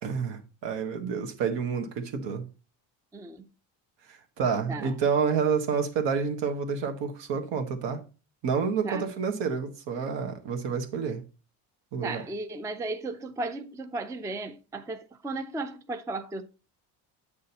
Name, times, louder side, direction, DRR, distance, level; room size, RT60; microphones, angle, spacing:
voice 1, 0.0-2.4 4.1-8.0 8.4-11.2 11.9-12.2, right 6 dB, 70° right, 1.5 m, -29 dB
voice 2, 3.1-3.5 4.7-4.9 8.8-9.1 12.0-16.4, right 2 dB, 10° right, 0.4 m, -35 dB
8.5 x 6.3 x 2.9 m
cardioid pair, 120°, 45 cm